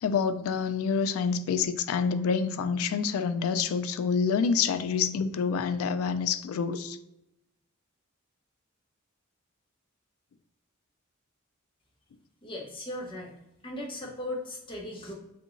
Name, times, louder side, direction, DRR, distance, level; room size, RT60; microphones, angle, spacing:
voice 1, 0.0-7.0, left 6 dB, 85° left, 11 dB, 0.3 m, -27 dB
voice 2, 12.4-13.3 13.6-15.1, left 1 dB, 25° left, -2 dB, 0.8 m, -37 dB
3.7 x 2.9 x 2.5 m, 0.87 s
head